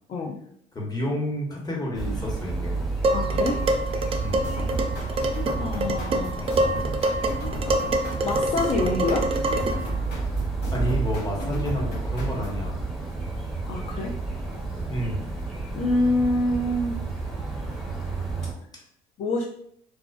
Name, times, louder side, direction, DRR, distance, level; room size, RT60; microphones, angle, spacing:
voice 1, 0.7-2.7 4.2-4.4 6.4-6.5 10.7-12.8 14.9-15.2, equal, 20° left, -2 dB, 1.0 m, -30 dB
sound 1, 1.9-18.5, right 3 dB, ahead, 0.7 m, -31 dB
Dishes pots and pans, 3.0-9.9, right 2 dB, 35° right, 0.4 m, -26 dB
voice 2, 3.1-3.6 5.6-6.6 8.2-9.3 13.6-14.1 15.8-17.0 19.2-19.4, left 2 dB, 45° left, -2 dB, 0.4 m, -26 dB
sound 2, 4.4-12.7, left 2 dB, 75° left, 0.8 m, -36 dB
2.3 x 2.2 x 2.4 m, 0.67 s
hypercardioid pair, 65°, 17 cm